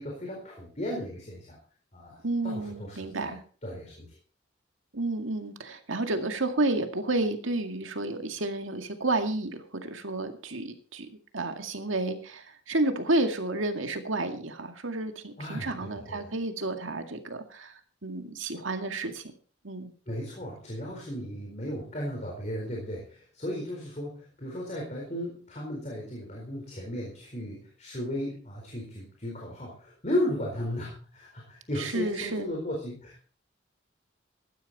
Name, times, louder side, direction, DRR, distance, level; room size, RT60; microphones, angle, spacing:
voice 1, 0.0-1.6 1.9-3.3 3.6-4.1 15.4-16.3 20.1-33.2, left 1 dB, 35° left, -1 dB, 4.2 m, -35 dB
voice 2, 2.2-3.4 4.9-11.1 11.3-17.7 18.0-19.2 19.6-19.9 31.8-32.5, right 2 dB, 80° right, 6 dB, 2.1 m, -31 dB
16.0 x 12.0 x 4.2 m, 0.40 s
head